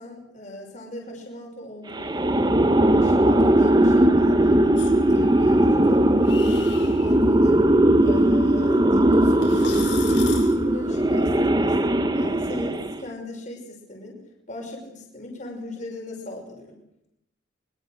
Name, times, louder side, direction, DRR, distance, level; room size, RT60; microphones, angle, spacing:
voice 1, 0.0-2.3 2.9-7.6 8.0-14.2 14.5-16.8, left 2 dB, 40° left, 0 dB, 5.8 m, -39 dB
sound 1, 1.9-13.1, right 1 dB, 20° right, 1.0 m, -19 dB
sound 2, 4.8-11.5, left 5 dB, 75° left, 6.8 m, -40 dB
24.5 x 23.5 x 6.5 m, 0.80 s
head